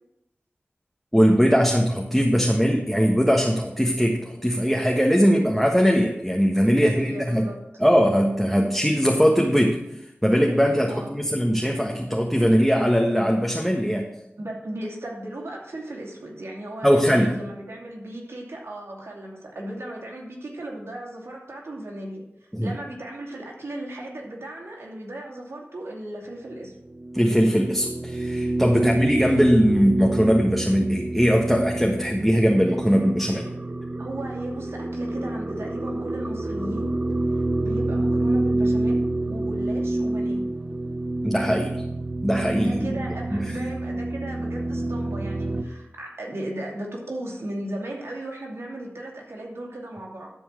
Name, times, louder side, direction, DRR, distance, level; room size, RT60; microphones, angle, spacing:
voice 1, 1.1-7.5 7.8-9.8 10.2-14.0 16.8-17.4 22.5-22.7 27.1-33.4 41.2-41.8 42.2-42.9 43.3-43.6, equal, ahead, 0 dB, 1.5 m, -20 dB
voice 2, 6.7-7.6 10.9-11.2 14.4-22.2 22.6-26.7 28.8-29.0 34.0-36.9 37.3-40.5 42.6-50.3, right 1 dB, 80° right, -2 dB, 2.6 m, -36 dB
sound 1, 26.9-45.6, right 2 dB, 35° right, 0.9 m, -28 dB
12.5 x 4.6 x 7.5 m, 0.86 s
cardioid pair, 40°, 4 cm